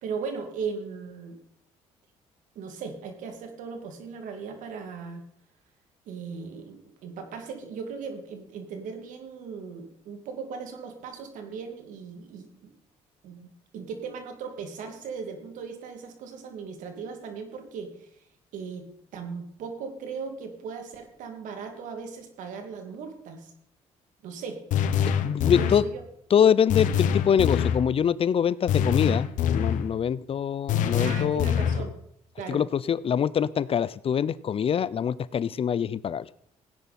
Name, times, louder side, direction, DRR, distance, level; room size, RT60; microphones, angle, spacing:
voice 1, 0.0-1.4 2.6-5.2 6.1-12.7 13.2-18.1 18.5-18.8 19.1-23.5 24.2-24.6 25.5-26.0 31.0-31.9 32.4-32.6, right 5 dB, 80° right, 6 dB, 2.6 m, -38 dB
sound 1, 24.7-25.9 26.7-27.9 28.7-29.9 30.7-31.9, left 8 dB, 80° left, 1.1 m, -25 dB
voice 2, 25.2-25.8 26.3-29.3 29.5-31.5 32.5-36.3, left 8 dB, 45° left, 20 dB, 0.6 m, -24 dB
16.5 x 10.5 x 4.3 m, 0.71 s
supercardioid pair, 75°, 13 cm